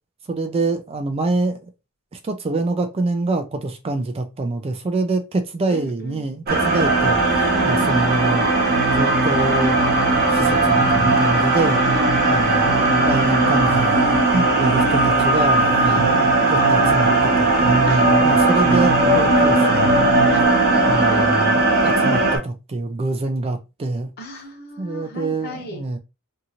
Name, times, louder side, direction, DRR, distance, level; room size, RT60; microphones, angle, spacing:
voice 1, 0.3-1.6 2.1-8.5 8.9-9.8 10.3-11.9 12.2-12.7 13.0-14.0 14.3-20.1 20.8-24.1 24.8-26.0, right 2 dB, 25° right, 0.3 m, -25 dB
voice 2, 5.7-6.3 11.9-12.4 15.8-16.1 17.9-18.1 20.3-21.4 24.2-25.9, left 1 dB, 45° left, 0.9 m, -33 dB
sound 1, 6.5-22.4, right 2 dB, 45° right, 0.9 m, -17 dB
sound 2, 7.9-20.4, right 3 dB, 80° left, 1.1 m, -30 dB
2.7 x 2.5 x 2.8 m
head